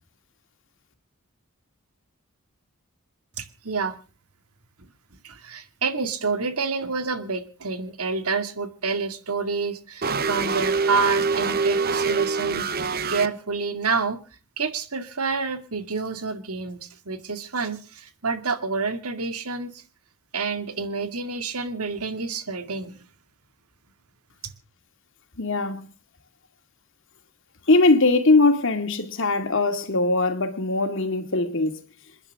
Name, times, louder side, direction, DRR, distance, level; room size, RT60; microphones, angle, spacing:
voice 1, 3.4-4.0 5.2-14.2 14.6-19.8 20.3-23.0 24.4-24.5, right 4 dB, 90° right, 2.2 m, -28 dB
sound 1, 10.0-13.3, right 4 dB, 45° right, 0.9 m, -24 dB
voice 2, 25.4-25.9 27.7-31.8, left 3 dB, 60° left, 2.3 m, -21 dB
28.0 x 10.5 x 3.6 m
head